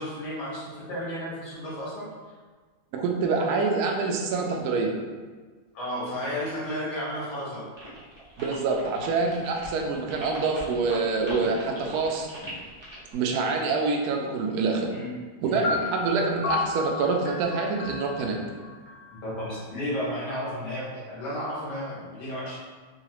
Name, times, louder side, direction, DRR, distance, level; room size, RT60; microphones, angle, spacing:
voice 1, 0.0-2.1 5.7-7.7 14.9-15.1 15.4-15.8 19.2-22.6, equal, 65° left, -7 dB, 1.8 m, -33 dB
voice 2, 2.9-4.9 8.4-12.3 13.1-14.9 15.4-18.4, right 4 dB, 75° right, 1 dB, 0.9 m, -26 dB
sound 1, 7.8-13.1, right 1 dB, 40° right, 0.4 m, -41 dB
sound 2, 15.6-19.5, left 4 dB, 90° left, 1.5 m, -33 dB
3.9 x 2.4 x 2.9 m, 1.4 s
omnidirectional pair, 2.1 m